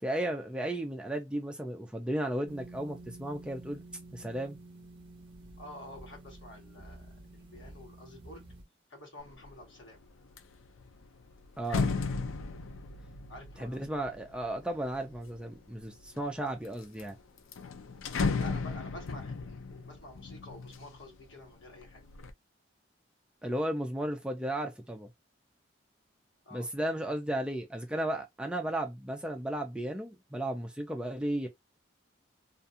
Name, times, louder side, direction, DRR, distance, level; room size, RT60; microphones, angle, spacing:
voice 1, 0.0-3.8 4.1-4.6 11.6-11.9 13.6-17.2 23.4-25.1 26.5-31.5, right 1 dB, 5° right, 0.4 m, -34 dB
sound 1, 2.5-8.6, right 2 dB, 25° right, 0.8 m, -50 dB
voice 2, 5.6-8.5 8.9-10.0 13.3-14.1 18.3-22.0 26.4-26.7, left 1 dB, 75° left, 1.2 m, -49 dB
sound 2, 9.3-9.6 10.0-15.4 16.0-16.7 17.0-17.1 17.4-21.3 21.7-22.3, left 4 dB, 90° left, 0.4 m, -35 dB
2.5 x 2.3 x 2.6 m
head